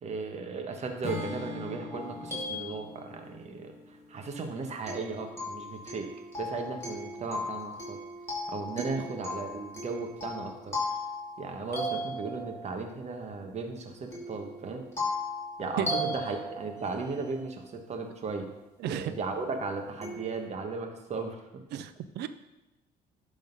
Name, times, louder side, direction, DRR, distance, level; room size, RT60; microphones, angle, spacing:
voice 1, 0.0-6.1 6.4-8.0 8.5-10.8 11.4-14.8 15.6-18.5 18.8-21.4, right 4 dB, 40° right, 4 dB, 1.3 m, -36 dB
Acoustic guitar / Strum, 1.0-5.2, left 3 dB, 35° left, 1.5 m, -42 dB
sound 1, 1.9-3.4 4.9-12.8 14.1-17.5 19.0-19.1 20.0-20.5, left 1 dB, 15° left, 2.9 m, -37 dB
voice 2, 21.7-22.3, right 10 dB, 80° right, 12 dB, 0.6 m, -33 dB
11.0 x 3.9 x 5.4 m, 1.0 s
cardioid pair, 110°, 17 cm